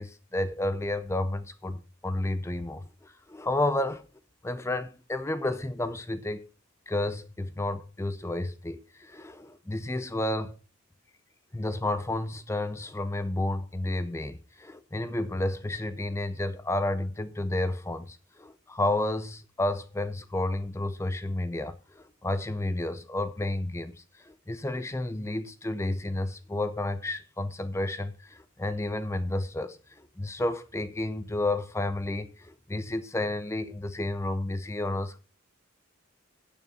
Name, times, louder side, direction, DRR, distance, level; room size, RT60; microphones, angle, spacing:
voice 1, 0.0-4.1 4.4-6.4 6.9-10.6 11.5-23.9 24.2-35.2, left 1 dB, 15° left, 0.5 m, -31 dB
8.8 x 6.8 x 5.5 m
head